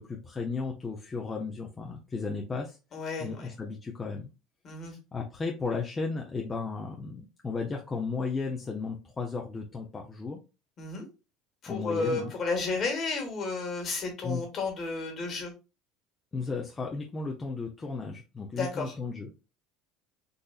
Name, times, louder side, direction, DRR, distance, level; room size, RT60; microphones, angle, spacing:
voice 1, 0.0-2.8 3.2-4.3 5.1-10.4 11.7-12.3 14.2-14.4 16.3-19.3, left 4 dB, 25° left, 0 dB, 0.6 m, -34 dB
voice 2, 2.9-3.5 4.6-5.0 10.8-11.1 11.6-15.5 18.5-18.9, left 3 dB, 45° left, 2 dB, 1.5 m, -32 dB
3.9 x 2.6 x 2.4 m, 0.29 s
supercardioid pair, 95°, 0 cm